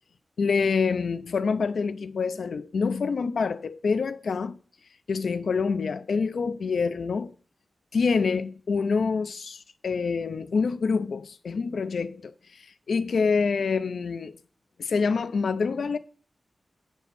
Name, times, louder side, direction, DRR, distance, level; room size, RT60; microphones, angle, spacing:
voice 1, 0.4-4.6 5.1-7.3 7.9-14.4 14.8-16.0, left 5 dB, 85° left, 0.5 m, -26 dB
8.3 x 4.5 x 6.9 m
wide cardioid pair, 85°, 0 cm